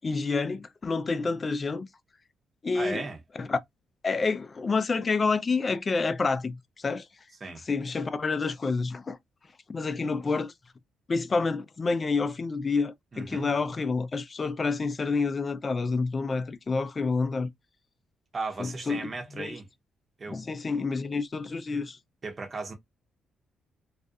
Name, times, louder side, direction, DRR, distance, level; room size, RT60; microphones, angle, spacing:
voice 1, 0.0-1.9 2.6-3.0 3.4-3.6 4.0-7.1 7.6-9.2 9.7-10.5 11.1-17.5 18.6-19.1 19.3-19.6 20.3-22.0, left 4 dB, 35° left, 0.4 m, -28 dB
voice 2, 2.7-3.2 7.4-7.6 13.1-13.5 18.3-19.7 20.2-20.4 22.2-22.7, right 3 dB, 35° right, 0.8 m, -36 dB
2.4 x 2.2 x 2.6 m
cardioid pair, 90°, 0 cm